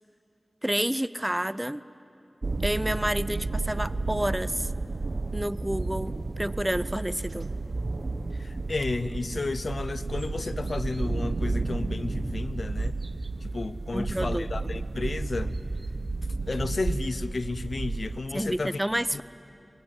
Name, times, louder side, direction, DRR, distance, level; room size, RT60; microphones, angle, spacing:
voice 1, 0.6-1.8 2.6-4.7 5.3-7.5 13.9-14.7 18.3-19.2, right 1 dB, 10° right, 16 dB, 0.5 m, -29 dB
sound 1, 2.4-18.2, right 3 dB, 65° right, 0.9 m, -32 dB
voice 2, 8.4-13.0 13.4-15.6 16.4-18.8 19.1-19.2, left 3 dB, 75° left, 15 dB, 0.6 m, -32 dB
22.0 x 21.0 x 9.4 m, 2.8 s
wide cardioid pair, 55°, 0 cm